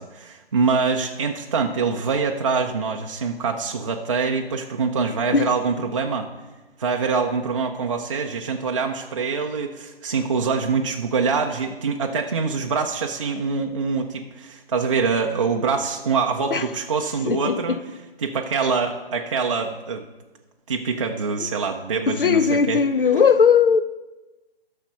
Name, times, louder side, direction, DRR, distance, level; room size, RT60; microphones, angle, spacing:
voice 1, 0.0-6.3 6.8-17.8 18.2-20.0 20.7-22.8, right 5 dB, 30° right, 0.5 m, -24 dB
voice 2, 17.2-17.8 22.1-23.8, left 6 dB, 60° left, 0.6 m, -18 dB
11.0 x 6.5 x 5.3 m
figure-of-eight pair, 135°, 30 cm